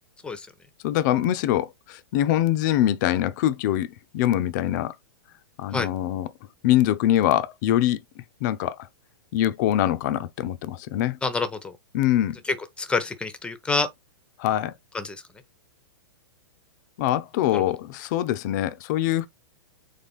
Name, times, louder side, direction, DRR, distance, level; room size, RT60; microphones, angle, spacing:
voice 1, 0.8-3.9 4.1-4.9 5.6-6.3 6.6-8.0 8.4-8.8 9.3-11.2 11.9-12.4 14.4-14.7 17.0-19.3, left 12 dB, 45° left, 0.6 m, -23 dB
voice 2, 11.2-11.7 12.5-13.9 14.9-15.2 17.5-17.6, left 4 dB, 10° left, 0.8 m, -27 dB
4.2 x 3.4 x 3.5 m
hypercardioid pair, 135°, 13 cm